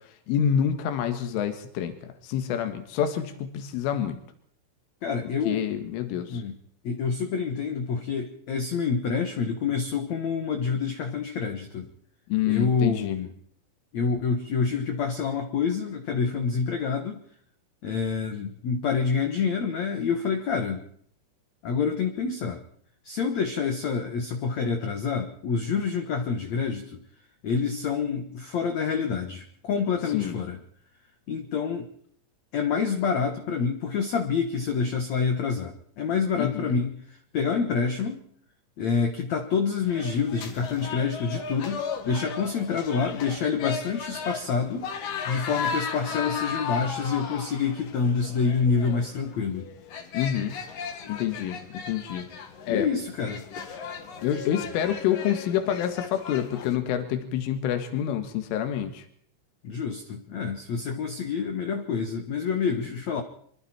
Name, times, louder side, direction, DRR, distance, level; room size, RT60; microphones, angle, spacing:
voice 1, 0.3-1.9 2.2-4.2 5.5-6.4 12.3-13.2 30.1-30.4 36.4-36.5 50.1-50.6 51.1-51.6 51.9-52.3 52.7-52.9 54.2-59.0, left 9 dB, 90° left, 8 dB, 4.2 m, -27 dB
voice 2, 5.0-5.6 6.3-6.6 6.8-11.9 12.5-13.3 13.9-17.2 17.8-20.8 21.6-22.6 23.0-27.0 27.4-30.6 31.3-31.9 32.5-36.9 37.3-38.2 38.8-44.9 45.2-49.7 52.7-53.4 59.6-63.2, left 5 dB, 70° left, 6 dB, 1.7 m, -27 dB
sound 1, 39.9-56.7, left 6 dB, 55° left, 3.3 m, -36 dB
25.0 x 25.0 x 4.4 m, 0.64 s
omnidirectional pair, 5.5 m